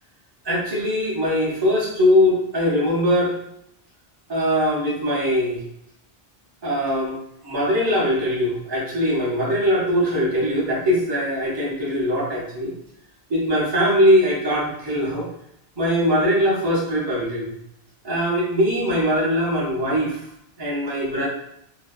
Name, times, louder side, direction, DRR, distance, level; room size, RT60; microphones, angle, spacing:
voice 1, 0.4-3.3 4.3-5.6 6.6-7.2 7.4-12.7 13.3-15.3 15.8-17.5 18.0-20.2 20.6-21.3, equal, 30° right, -5 dB, 0.5 m, -21 dB
2.5 x 2.1 x 2.3 m, 0.77 s
omnidirectional pair, 1.0 m